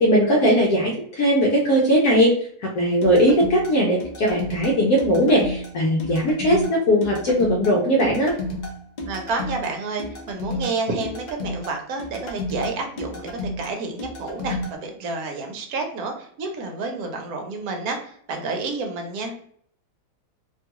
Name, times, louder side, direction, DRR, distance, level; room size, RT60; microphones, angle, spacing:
voice 1, 0.0-2.3 2.6-8.3, equal, 70° left, -3 dB, 1.1 m, -19 dB
sound 1, 3.0-14.7, left 1 dB, 90° left, 0.4 m, -32 dB
voice 2, 9.1-19.3, right 3 dB, 70° right, 3 dB, 1.0 m, -29 dB
2.9 x 2.3 x 2.8 m, 0.63 s
omnidirectional pair, 1.7 m